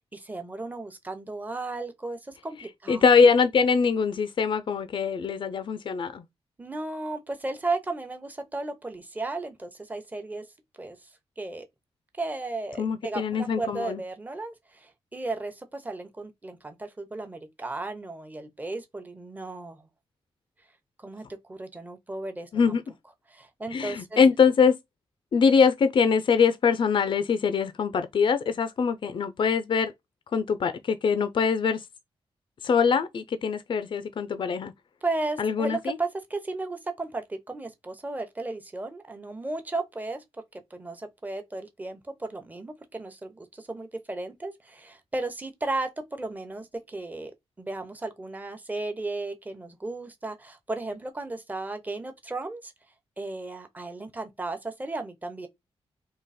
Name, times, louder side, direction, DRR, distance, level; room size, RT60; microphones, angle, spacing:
voice 1, 0.1-3.0 6.6-10.5 10.8-11.1 11.4-11.7 12.2-19.9 21.0-22.8 23.3-24.2 35.0-40.2 40.5-47.3 47.6-52.7 53.2-55.5, right 2 dB, 15° right, 0.9 m, -35 dB
voice 2, 2.9-6.2 12.8-14.0 22.5-22.8 23.7-24.7 25.3-29.9 30.3-31.8 32.6-34.7 35.4-36.0, left 6 dB, 55° left, 0.5 m, -23 dB
3.8 x 2.9 x 4.1 m
wide cardioid pair, 115°, 10 cm